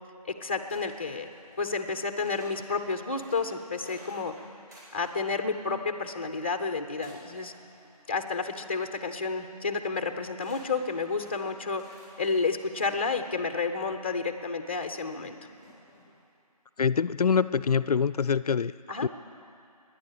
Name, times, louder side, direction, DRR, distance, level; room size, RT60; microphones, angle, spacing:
voice 1, 0.2-1.3 1.6-4.3 4.9-7.5 8.1-11.8 12.2-15.4 18.9-19.1, left 4 dB, 15° left, 7 dB, 0.5 m, -30 dB
sound 1, 0.7-2.6 3.0-5.2 5.5-6.4 7.0-8.4 8.8-9.0 10.0-10.1 10.4-13.2 14.0-14.1 15.5-16.2, right 1 dB, 30° right, 4.7 m, -53 dB
voice 2, 16.8-18.7 19.0-19.1, left 6 dB, 70° left, 17 dB, 0.4 m, -25 dB
20.0 x 10.0 x 6.8 m, 2.6 s
figure-of-eight pair, 170°, 20 cm